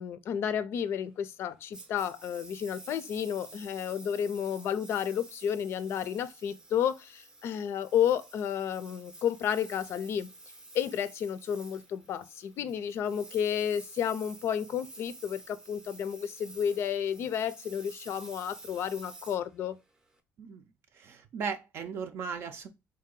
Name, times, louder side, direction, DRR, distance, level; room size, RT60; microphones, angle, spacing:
voice 1, 0.0-10.3 10.7-19.8, left 9 dB, 50° left, 0.5 m, -31 dB
Engine, 1.7-20.2, right 2 dB, 15° right, 0.6 m, -50 dB
voice 2, 21.0-22.7, right 6 dB, 50° right, 0.5 m, -37 dB
3.8 x 2.8 x 3.7 m
cardioid pair, 165°, 5 cm